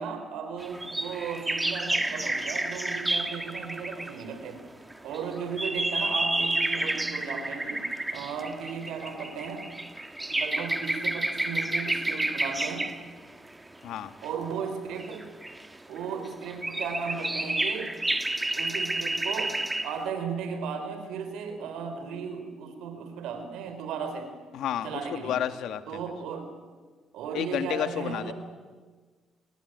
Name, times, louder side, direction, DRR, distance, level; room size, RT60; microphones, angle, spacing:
voice 1, 0.0-4.6 5.0-9.7 10.4-12.9 14.2-15.3 15.9-17.9 18.5-24.3 24.8-25.4 25.9-26.5 27.1-28.3, right 6 dB, 90° right, 8 dB, 4.5 m, -35 dB
sound 1, 0.6-4.2 4.9-13.1 14.2-14.3 15.0-16.0 16.2-20.0, right 2 dB, 15° right, 2.0 m, -30 dB
voice 2, 24.5-25.8 27.3-28.3, left 10 dB, 80° left, 10 dB, 1.7 m, -31 dB
27.5 x 21.5 x 9.4 m, 1.5 s
cardioid pair, 90°, 0 cm